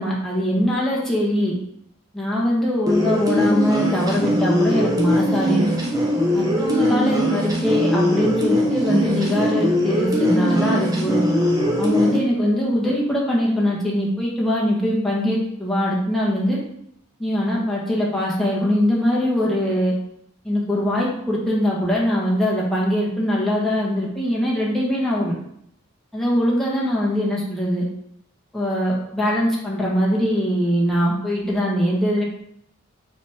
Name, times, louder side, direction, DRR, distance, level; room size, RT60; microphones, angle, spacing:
voice 1, 0.0-1.5 2.1-5.7 6.3-11.2 11.8-16.6 17.2-19.9 20.4-25.3 26.1-27.8 28.5-32.2, equal, ahead, -5 dB, 1.3 m, -22 dB
sound 1, 2.9-12.2, equal, 20° right, 1.0 m, -20 dB
5.7 x 3.6 x 4.8 m, 0.74 s
head